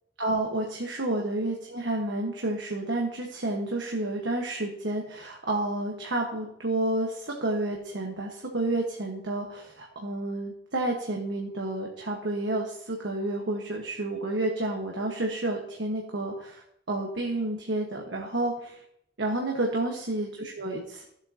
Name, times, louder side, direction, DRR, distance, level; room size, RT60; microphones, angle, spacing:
voice 1, 0.2-18.8 19.2-21.0, right 2 dB, 75° right, 0 dB, 1.4 m, -30 dB
15.5 x 7.6 x 2.9 m, 0.74 s
head